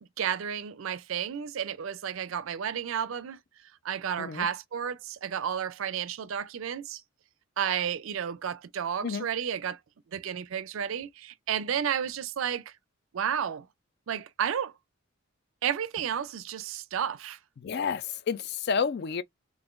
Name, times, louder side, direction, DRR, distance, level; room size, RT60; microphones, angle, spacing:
voice 1, 0.2-3.4 3.8-7.0 7.6-9.8 10.1-12.7 13.1-13.7 14.1-14.7 15.6-17.4, right 8 dB, 65° right, 0.4 m, -32 dB
voice 2, 17.6-19.2, left 6 dB, 50° left, 0.4 m, -30 dB
3.6 x 2.5 x 2.4 m
head